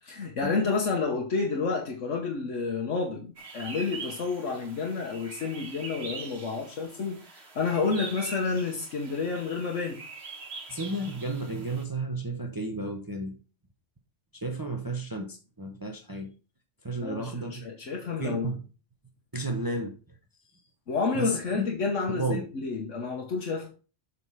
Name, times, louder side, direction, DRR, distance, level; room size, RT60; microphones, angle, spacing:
voice 1, 0.0-10.0 17.0-18.6 20.9-23.7, left 4 dB, 75° left, 1.5 m, -30 dB
sound 1, 3.4-11.8, right 4 dB, 55° right, 1.6 m, -43 dB
voice 2, 10.7-13.3 14.3-16.3 16.8-17.6 18.2-18.6 19.3-19.9 21.1-21.7 22.1-22.4, right 2 dB, 20° right, 0.9 m, -32 dB
7.9 x 4.3 x 5.6 m
omnidirectional pair, 1.3 m